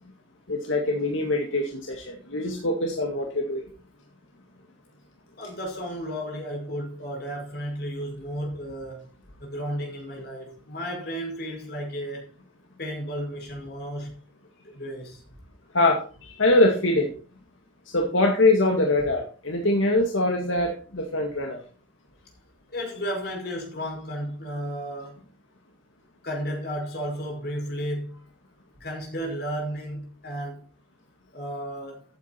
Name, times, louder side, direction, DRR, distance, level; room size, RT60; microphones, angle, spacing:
voice 1, 0.5-3.6 15.7-17.1 17.9-21.6, left 2 dB, 75° left, 2.1 m, -23 dB
voice 2, 5.4-9.0 9.4-12.3 12.8-14.1 14.6-15.2 22.7-25.2 26.2-28.1 28.8-30.6 31.3-32.0, equal, 50° left, 5.5 m, -33 dB
15.0 x 8.5 x 4.4 m
head